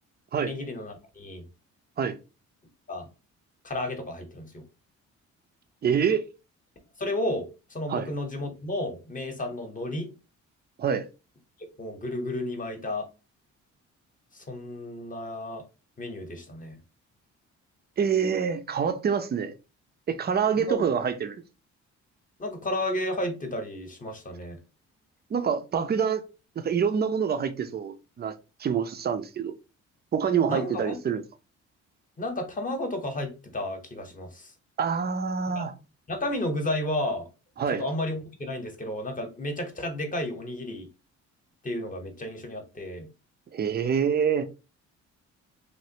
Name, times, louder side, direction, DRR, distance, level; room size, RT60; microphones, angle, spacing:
voice 1, 0.4-1.5 2.9-3.1 3.6-4.6 7.0-10.1 11.8-13.1 14.3-15.7 16.0-16.8 20.5-20.8 22.4-24.6 30.5-31.0 32.2-34.5 35.5-35.6 36.1-37.3 37.7-40.9 41.6-43.1, left 1 dB, 25° left, 0.9 m, -32 dB
voice 2, 5.8-6.2 7.9-8.1 10.8-11.1 18.0-19.5 20.1-21.4 25.3-26.2 26.6-29.6 30.1-31.2 34.8-35.7 37.6-37.8 43.5-44.4, right 7 dB, 35° right, 0.5 m, -26 dB
3.1 x 2.5 x 2.8 m
cardioid pair, 90°, 30 cm